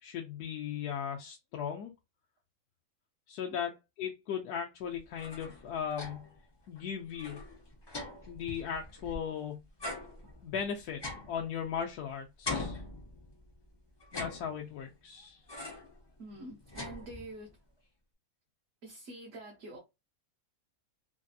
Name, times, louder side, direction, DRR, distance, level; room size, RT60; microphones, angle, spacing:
voice 1, 0.0-1.9 3.3-3.7 4.0-6.2 6.7-7.4 8.3-9.6 10.4-11.0 11.3-12.8 14.1-15.4, left 8 dB, 80° left, 1.1 m, -37 dB
sound 1, 5.0-6.4 6.8-6.9 7.1-9.4 9.8-12.0 12.4-13.5 14.0-14.9 15.5-16.0 16.3-17.5, left 2 dB, 35° left, 0.4 m, -42 dB
voice 2, 16.2-17.6 18.8-19.8, right 2 dB, 60° right, 1.1 m, -46 dB
3.3 x 2.6 x 2.3 m
omnidirectional pair, 1.6 m